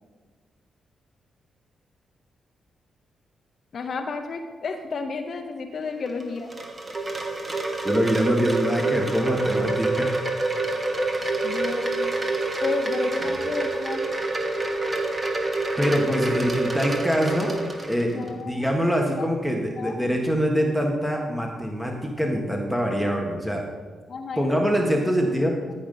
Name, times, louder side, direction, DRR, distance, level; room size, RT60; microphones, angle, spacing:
voice 1, 3.7-6.5 11.4-12.1 12.6-14.1 18.1-18.9 19.2-19.3 19.8-20.1 24.1-24.6 25.2-25.7, left 4 dB, 60° left, 5 dB, 0.8 m, -32 dB
Wind chime, 6.1-18.3, right 2 dB, 35° right, 1.8 m, -27 dB
voice 2, 7.8-10.2 11.2-11.3 15.8-17.5 17.9-23.7 24.4-25.6, equal, ahead, 0 dB, 1.5 m, -24 dB
13.0 x 5.4 x 5.4 m, 1.5 s
supercardioid pair, 60°, 0 cm